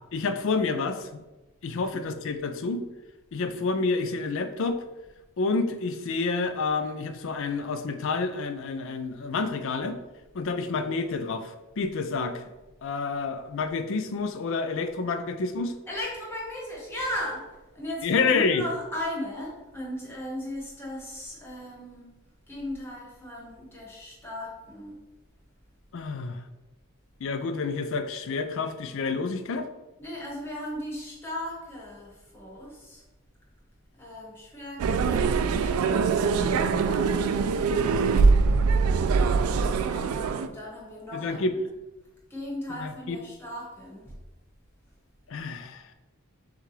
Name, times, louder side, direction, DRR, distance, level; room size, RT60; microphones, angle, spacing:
voice 1, 0.1-1.2 1.6-2.8 3.3-4.8 5.4-10.0 10.3-12.4 12.8-15.7 18.0-18.6 25.9-26.4 27.2-29.7 41.1-41.5 42.8-43.2 45.3-45.9, left 4 dB, 60° left, 9 dB, 0.4 m, -29 dB
voice 2, 1.7-2.0 15.9-25.0 30.0-33.0 34.0-37.9 39.7-41.4 42.3-44.2, left 1 dB, 10° left, -4 dB, 1.2 m, -37 dB
sound 1, 34.8-40.5, right 4 dB, 75° right, 0.3 m, -23 dB
6.5 x 2.4 x 3.2 m, 1.1 s
head